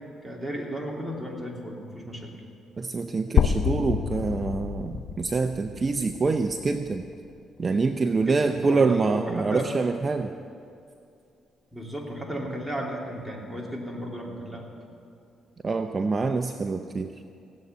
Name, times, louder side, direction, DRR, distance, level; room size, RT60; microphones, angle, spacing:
voice 1, 0.2-2.3 8.2-9.7 11.7-14.6, equal, ahead, -2 dB, 3.0 m, -34 dB
voice 2, 2.8-7.1 7.6-10.3 15.6-17.2, right 4 dB, 35° right, 7 dB, 0.6 m, -25 dB
sound 1, 3.4-7.3, left 8 dB, 65° left, 0.4 m, -28 dB
17.5 x 8.1 x 9.2 m, 2.5 s
cardioid pair, 90°, 0 cm